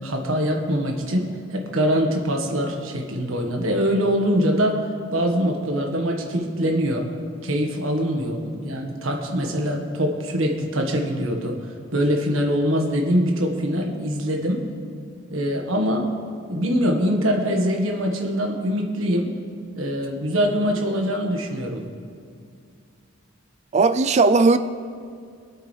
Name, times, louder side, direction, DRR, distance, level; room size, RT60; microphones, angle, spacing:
voice 1, 0.0-4.8 5.1-7.1 7.4-11.6 11.9-14.7 15.3-16.1 16.5-19.3 19.8-21.8, equal, 65° right, 1 dB, 1.5 m, -23 dB
voice 2, 23.7-24.6, right 3 dB, 35° right, 11 dB, 0.4 m, -16 dB
23.5 x 8.5 x 3.3 m, 2.3 s
head